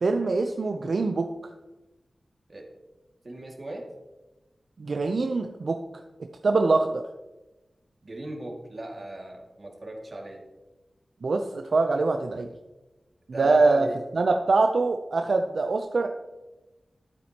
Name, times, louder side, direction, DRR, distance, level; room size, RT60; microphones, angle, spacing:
voice 1, 0.0-1.5 4.8-5.8 6.2-7.1 11.2-12.5 13.4-13.9 14.1-16.1, right 3 dB, 70° right, 5 dB, 0.5 m, -24 dB
voice 2, 3.2-3.9 8.0-10.4 13.3-14.0, right 1 dB, 45° right, 0 dB, 2.1 m, -37 dB
13.0 x 8.6 x 2.9 m, 1.1 s
wide cardioid pair, 90°, 0 cm